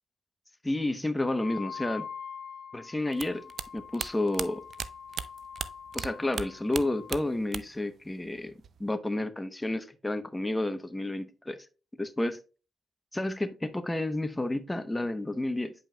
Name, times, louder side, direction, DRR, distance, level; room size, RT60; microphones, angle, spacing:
voice 1, 0.6-2.1 2.7-3.4 3.7-4.6 5.9-8.5 8.8-11.6 12.0-12.4 13.1-15.7, left 1 dB, 15° left, 0.9 m, -31 dB
Wind instrument woodwind instrument, 1.3-7.2, left 7 dB, 60° left, 0.8 m, -44 dB
sound 1, 3.1-6.1 6.3-7.9 8.1-8.9, right 6 dB, 60° right, 0.4 m, -36 dB
8.8 x 5.4 x 2.3 m
supercardioid pair, 60°, 0 cm